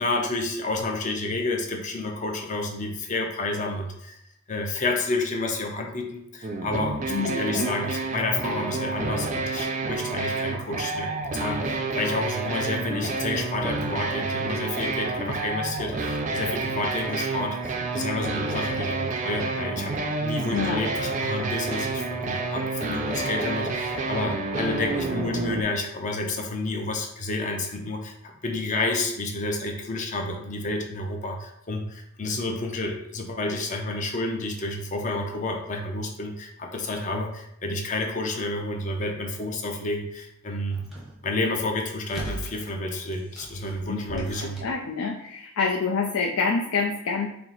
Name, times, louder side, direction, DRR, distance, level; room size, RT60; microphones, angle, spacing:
voice 1, 0.0-4.2 4.5-40.8 41.2-44.6, left 2 dB, 35° left, 2 dB, 0.5 m, -30 dB
sound 1, 6.4-25.6, right 3 dB, 35° right, 0.3 m, -29 dB
voice 2, 7.1-7.7 20.5-20.8 43.9-47.3, left 4 dB, 90° left, 0 dB, 0.5 m, -27 dB
sound 2, 40.7-41.2 42.1-42.7 43.1-44.8, right 1 dB, ahead, 0.8 m, -39 dB
4.5 x 2.0 x 3.9 m, 0.77 s
head